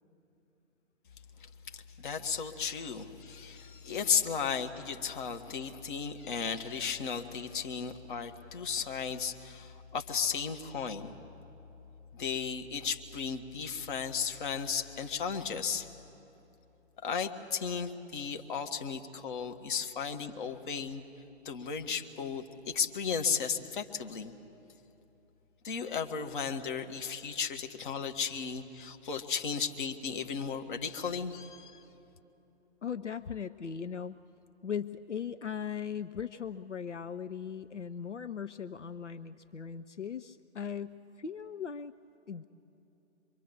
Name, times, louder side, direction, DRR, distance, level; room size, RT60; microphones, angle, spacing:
voice 1, 1.7-11.1 12.1-15.9 17.0-21.0 21.4-24.3 25.6-31.8, left 6 dB, 45° left, 6 dB, 1.5 m, -35 dB
voice 2, 32.8-34.2 34.6-41.9 42.3-42.4, left 7 dB, 85° left, 12 dB, 0.6 m, -38 dB
24.5 x 23.5 x 7.2 m, 2.9 s
figure-of-eight pair, 125°, 35 cm